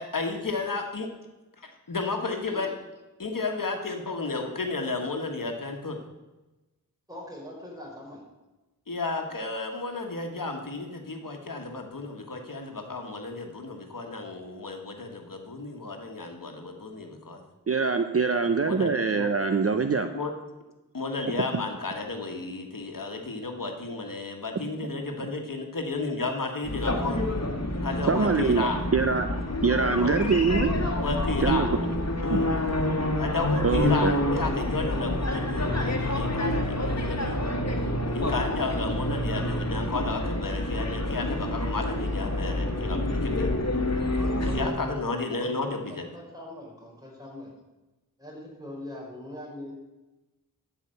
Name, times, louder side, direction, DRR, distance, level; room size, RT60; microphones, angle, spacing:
voice 1, 0.1-1.1 1.9-2.7 3.2-6.0 8.9-17.4 18.6-19.3 20.1-20.3 20.9-27.3 27.8-28.8 30.0-30.3 30.9-31.9 32.2-32.5 33.1-37.5 38.1-43.5 44.4-46.0, left 3 dB, 65° left, 3 dB, 1.4 m, -32 dB
voice 2, 7.1-8.2 44.2-44.8 45.9-47.5 48.2-49.7, left 1 dB, 10° right, -3 dB, 4.7 m, -42 dB
voice 3, 17.7-20.1 28.1-29.3 29.6-30.7 31.4-31.7 32.3-32.4 33.6-34.1, right 4 dB, 40° right, 8 dB, 0.6 m, -24 dB
sound 1, 26.6-44.7, left 1 dB, 45° left, 1.6 m, -28 dB
13.0 x 5.0 x 7.7 m, 1.1 s
wide cardioid pair, 65°, 35 cm